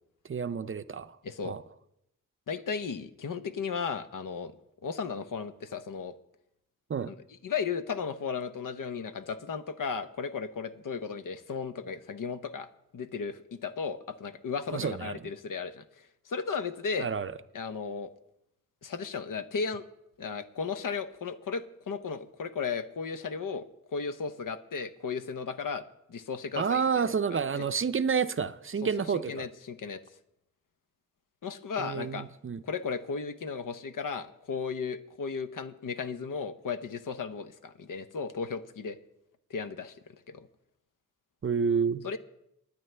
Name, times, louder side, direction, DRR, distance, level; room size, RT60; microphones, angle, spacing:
voice 1, 0.3-1.2 1.4-1.6 6.9-7.1 14.7-15.2 17.0-17.3 26.6-29.5 31.8-32.6 41.4-42.1, right 6 dB, 40° right, 0.5 m, -29 dB
voice 2, 1.2-1.6 2.5-4.5 4.8-6.1 7.1-7.2 7.4-12.7 12.9-15.8 16.3-17.1 17.5-18.1 18.8-19.8 20.2-25.8 26.1-26.8 27.5-27.7 29.1-30.0 31.4-32.3 32.6-39.0 39.5-40.0 40.3-40.5 42.0-42.2, left 5 dB, 75° left, 0.8 m, -35 dB
20.5 x 9.3 x 3.3 m
wide cardioid pair, 70°, 32 cm